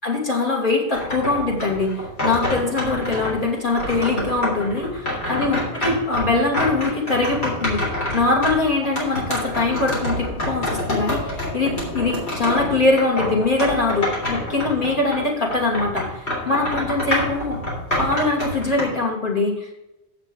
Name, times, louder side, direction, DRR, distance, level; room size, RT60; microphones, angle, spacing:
voice 1, 0.0-17.6 18.0-19.9, left 3 dB, 45° left, -1 dB, 3.1 m, -22 dB
sound 1, 0.9-3.4 3.8-15.3 15.5-18.8, left 1 dB, 70° left, 4.0 m, -27 dB
7.9 x 6.6 x 7.1 m, 0.92 s
omnidirectional pair, 1.2 m